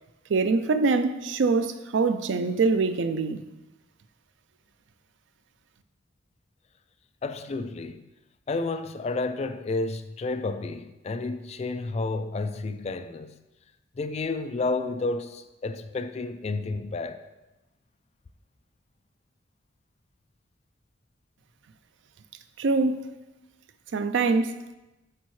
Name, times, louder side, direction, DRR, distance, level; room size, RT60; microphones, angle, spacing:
voice 1, 0.3-3.4 22.6-23.1 23.9-24.6, right 4 dB, 85° right, 0.4 m, -24 dB
voice 2, 7.2-8.1 8.5-13.4 14.0-17.2, left 3 dB, 35° left, 0.3 m, -31 dB
8.3 x 4.6 x 3.1 m
head